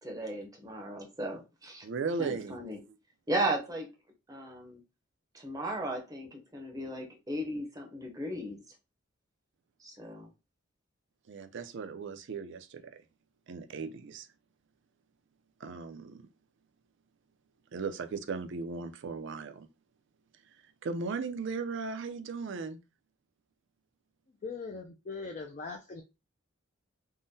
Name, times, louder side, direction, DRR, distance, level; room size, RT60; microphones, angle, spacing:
voice 1, 0.0-1.9 2.2-2.8 3.3-3.9 4.3-4.8 5.3-8.6 9.8-10.3, right 1 dB, 15° right, 0.6 m, -36 dB
voice 2, 1.8-2.6 11.3-13.0 13.5-14.3 15.6-16.2 17.7-19.7 20.6-22.8, right 4 dB, 60° right, 0.4 m, -37 dB
voice 3, 24.4-26.0, left 4 dB, 35° left, 0.3 m, -40 dB
3.6 x 2.1 x 2.6 m
head